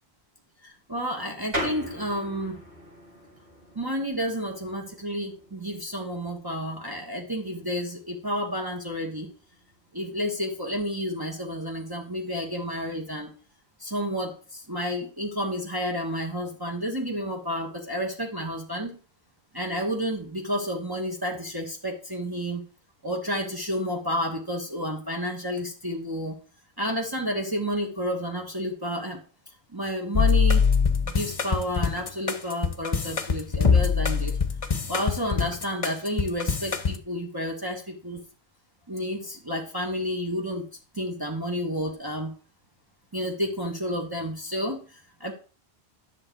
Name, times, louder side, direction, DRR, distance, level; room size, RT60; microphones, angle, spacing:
voice 1, 0.6-2.6 3.7-9.3 9.9-13.3 13.8-19.0 19.5-22.6 23.0-26.4 26.8-29.2 29.7-30.7 31.0-34.4 34.9-38.2 38.9-40.7 40.9-42.3 43.1-45.3, equal, 20° right, 0 dB, 1.3 m, -30 dB
sound 1, 1.5-11.7, equal, 65° right, 4.5 m, -41 dB
sound 2, 30.1-37.0, left 6 dB, 35° left, 0.9 m, -23 dB
11.0 x 6.5 x 4.5 m, 0.36 s
omnidirectional pair, 1.1 m